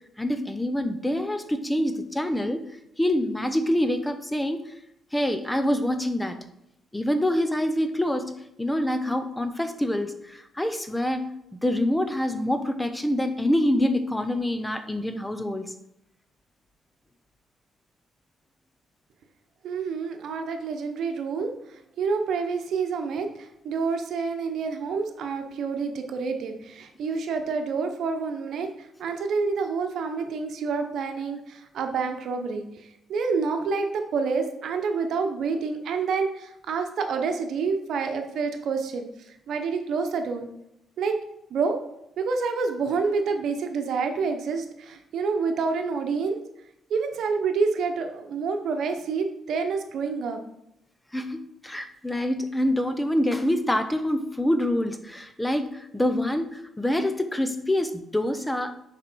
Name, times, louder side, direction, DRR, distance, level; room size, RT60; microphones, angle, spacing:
voice 1, 0.2-2.7 3.0-4.6 5.1-6.4 6.9-11.3 11.6-15.7 51.1-58.7, left 1 dB, 10° left, 8 dB, 0.7 m, -26 dB
voice 2, 19.6-21.5 22.0-28.7 29.0-32.6 33.1-39.1 39.5-40.5 41.0-41.2 41.5-41.8 42.2-46.4 46.9-50.4, right 5 dB, 70° right, 5 dB, 1.1 m, -28 dB
6.5 x 5.1 x 4.6 m, 0.80 s
cardioid pair, 90°, 0 cm